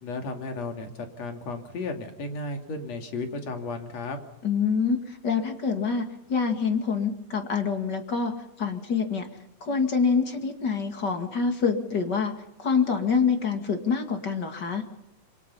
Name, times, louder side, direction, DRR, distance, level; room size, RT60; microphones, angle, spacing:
voice 1, 0.0-4.2, left 3 dB, 60° left, 5 dB, 3.7 m, -34 dB
voice 2, 4.4-8.3 8.6-9.3 9.6-12.3 12.6-14.8, left 5 dB, 35° left, 5 dB, 2.4 m, -26 dB
27.5 x 24.0 x 5.6 m, 0.86 s
omnidirectional pair, 3.5 m